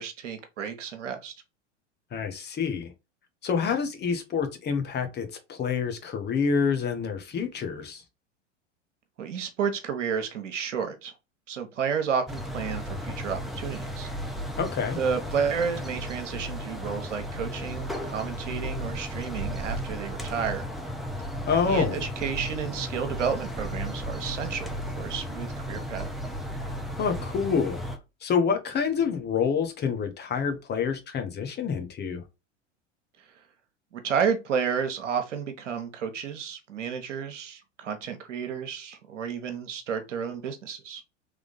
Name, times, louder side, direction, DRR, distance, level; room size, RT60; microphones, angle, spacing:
voice 1, 0.0-1.3 9.2-11.1 11.5-14.1 15.0-20.6 21.7-24.7 25.0-26.1 33.9-41.0, right 7 dB, 75° right, 1.1 m, -31 dB
voice 2, 2.1-2.9 3.4-8.0 14.6-15.0 21.5-22.0 27.0-27.8 28.2-32.2, left 6 dB, 25° left, 1.0 m, -27 dB
sound 1, 12.3-28.0, equal, ahead, 0.8 m, -34 dB
3.7 x 3.3 x 3.8 m
hypercardioid pair, 90°, 37 cm